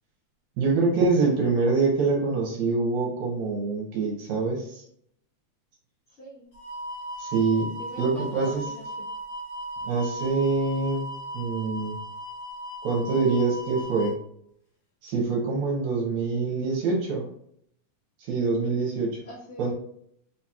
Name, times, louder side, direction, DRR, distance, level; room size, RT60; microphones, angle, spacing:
voice 1, 0.6-4.8 7.2-7.7 8.0-8.6 9.9-11.1 11.3-12.0 12.8-14.1 15.0-17.3 18.2-19.2 19.6-19.7, right 4 dB, 80° right, -2 dB, 2.1 m, -25 dB
voice 2, 6.1-6.5 7.8-9.0 19.2-19.7, right 1 dB, 80° left, -10 dB, 0.6 m, -42 dB
sound 1, 6.5-14.1, equal, 40° left, 1.5 m, -37 dB
4.5 x 2.8 x 2.3 m, 0.68 s
omnidirectional pair, 3.4 m